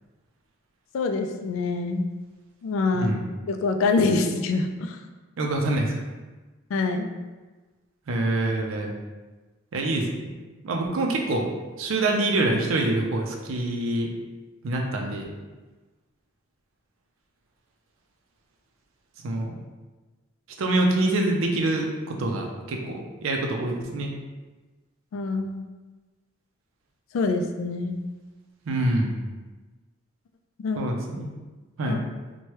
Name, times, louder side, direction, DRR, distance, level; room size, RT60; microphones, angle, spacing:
voice 1, 0.9-2.1 2.6-3.1 3.5-5.0 6.7-7.1 25.1-25.6 27.1-28.0 30.6-30.8 31.9-32.0, left 3 dB, 80° left, 6 dB, 0.3 m, -25 dB
voice 2, 5.4-6.0 8.1-8.9 9.7-10.1 10.6-11.5 11.8-14.1 14.6-15.3 19.2-19.5 20.6-24.1 28.7-29.2 30.8-31.3 31.8-32.0, right 2 dB, 85° right, 2 dB, 0.5 m, -25 dB
3.1 x 2.2 x 2.9 m, 1.2 s
head